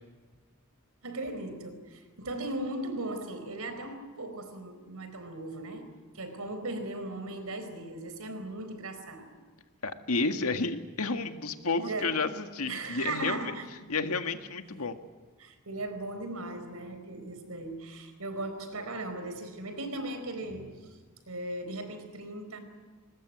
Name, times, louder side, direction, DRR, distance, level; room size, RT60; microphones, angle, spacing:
voice 1, 1.0-9.3 11.6-12.2 12.7-13.7 15.4-20.9 21.3-22.6, right 2 dB, 80° right, 4.3 m, -38 dB
voice 2, 9.8-13.5 13.9-15.0, left 3 dB, 80° left, 1.8 m, -31 dB
22.5 x 20.0 x 9.6 m
head